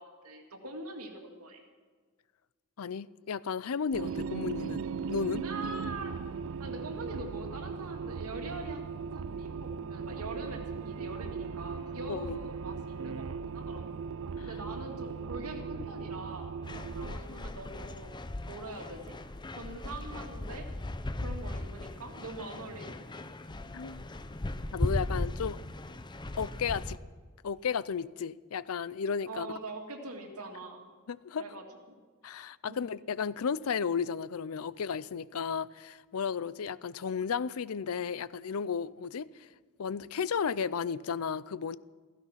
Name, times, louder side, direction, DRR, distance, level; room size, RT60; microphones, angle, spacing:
voice 1, 0.0-1.6 5.4-6.2 6.6-13.9 14.4-16.5 17.0-18.2 18.4-19.2 19.6-20.7 21.2-23.2 29.3-30.8 31.4-32.0 32.6-32.8, right 2 dB, 90° right, 2.4 m, -43 dB
voice 2, 2.8-4.8 5.1-5.4 12.1-12.4 14.4-14.5 23.7-24.0 24.6-25.6 26.4-27.0 27.4-29.5 31.1-31.4 32.2-39.5 39.8-41.8, left 6 dB, 75° left, 0.5 m, -34 dB
sound 1, 3.9-17.1, right 5 dB, 60° right, 0.4 m, -38 dB
sound 2, 16.6-27.0, left 1 dB, 20° left, 0.6 m, -37 dB
15.5 x 15.5 x 5.8 m
head